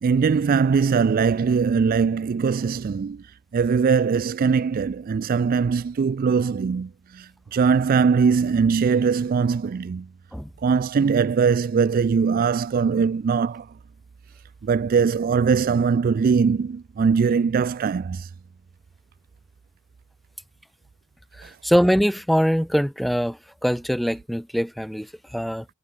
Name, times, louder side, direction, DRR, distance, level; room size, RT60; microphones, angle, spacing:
voice 1, 0.0-3.2 3.5-10.1 10.6-13.7 14.6-18.3, right 5 dB, 45° right, 0.3 m, -21 dB
voice 2, 21.4-25.7, equal, ahead, 0.8 m, -23 dB
head